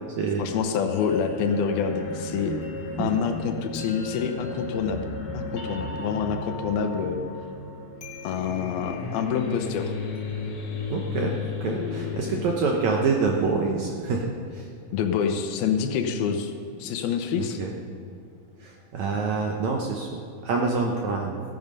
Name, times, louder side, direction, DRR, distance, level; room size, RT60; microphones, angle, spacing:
voice 1, 0.4-2.6 3.0-5.1 5.3-7.2 8.2-9.9 11.7-12.5 14.9-16.5 16.8-17.6, left 7 dB, 85° left, 6 dB, 2.8 m, -27 dB
sound 1, 0.9-13.9, left 3 dB, 65° left, 1.0 m, -34 dB
voice 2, 10.9-11.3 11.6-14.7 17.4-17.7 18.6-21.4, right 4 dB, 70° right, 1 dB, 1.8 m, -26 dB
15.0 x 9.0 x 5.4 m, 2.5 s
omnidirectional pair, 4.4 m